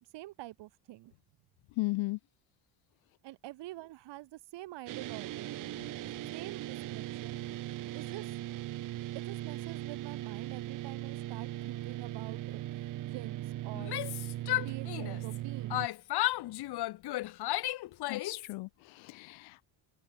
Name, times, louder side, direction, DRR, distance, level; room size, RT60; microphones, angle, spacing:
voice 1, 0.1-1.1 3.2-5.6 6.3-7.4 7.9-8.3 9.1-13.9 14.6-15.8, right 17 dB, 65° right, 1.9 m, -46 dB
voice 2, 1.8-2.2 5.8-5.9 18.1-19.7, left 22 dB, 80° left, 1.2 m, -36 dB
sound 1, 4.9-15.9, right 15 dB, 45° right, 0.6 m, -39 dB
Yell, 13.7-15.4 15.7-18.5, left 16 dB, 55° left, 1.2 m, -34 dB
open air
cardioid pair, 145°, 46 cm